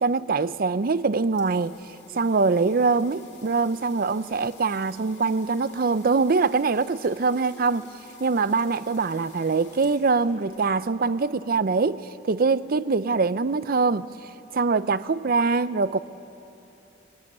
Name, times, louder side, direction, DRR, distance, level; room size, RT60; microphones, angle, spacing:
voice 1, 0.0-1.8 2.1-7.8 8.2-14.0 14.5-16.0, right 4 dB, 50° right, 15 dB, 0.5 m, -23 dB
sound 1, 1.0-11.1, left 5 dB, 85° left, 4.8 m, -52 dB
21.5 x 18.0 x 9.7 m, 2.9 s
head